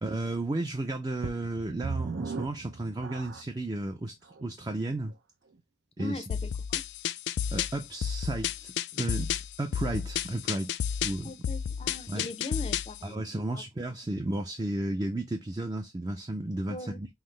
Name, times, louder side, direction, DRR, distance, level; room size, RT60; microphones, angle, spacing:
voice 1, 0.0-5.1 6.0-6.2 7.5-11.3 12.1-12.3 13.0-17.1, right 2 dB, 20° right, 0.4 m, -33 dB
sound 1, 1.2-3.7 4.3-4.4 5.0-5.1, right 4 dB, 75° right, 0.5 m, -37 dB
voice 2, 6.0-6.8 11.2-13.6 16.7-17.0, left 2 dB, 30° left, 0.5 m, -41 dB
sound 2, 6.3-13.0, left 8 dB, 90° left, 0.3 m, -32 dB
5.7 x 2.0 x 3.1 m
head